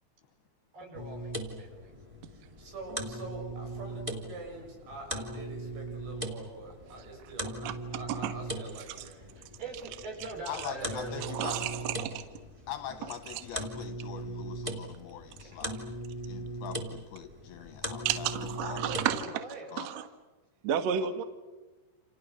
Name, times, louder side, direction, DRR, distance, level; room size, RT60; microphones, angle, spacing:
voice 1, 0.7-1.9 9.4-11.5 15.5-15.6 18.9-19.7, right 2 dB, 55° right, 3 dB, 6.9 m, -42 dB
sound 1, 0.9-19.3, right 1 dB, 35° right, 0.5 m, -39 dB
voice 2, 2.3-9.4 10.8-10.9, right 3 dB, 90° right, 2 dB, 8.6 m, -45 dB
voice 3, 10.5-11.7 12.7-15.8 16.3-18.8 19.7-19.9, left 10 dB, 75° left, 8 dB, 2.5 m, -42 dB
voice 4, 11.2-12.2 18.0-19.2 19.8-20.0 20.6-21.2, right 9 dB, 70° right, 8 dB, 1.6 m, -31 dB
29.0 x 28.5 x 6.4 m, 1.2 s
omnidirectional pair, 5.4 m